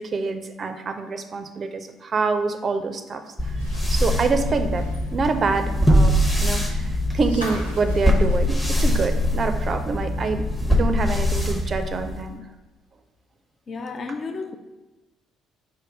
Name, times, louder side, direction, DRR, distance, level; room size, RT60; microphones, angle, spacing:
voice 1, 0.0-3.6 3.9-4.9 5.1-6.1 6.4-12.4, right 4 dB, 40° right, 0.4 m, -26 dB
sound 1, 3.4-9.5 9.8-9.9 11.3-11.4, equal, 85° left, 0.6 m, -42 dB
sound 2, 3.4-12.3, left 1 dB, 15° left, 0.7 m, -22 dB
voice 2, 13.7-14.6, left 4 dB, 40° left, 0.4 m, -32 dB
5.3 x 2.2 x 4.7 m
figure-of-eight pair, 50°, 0 cm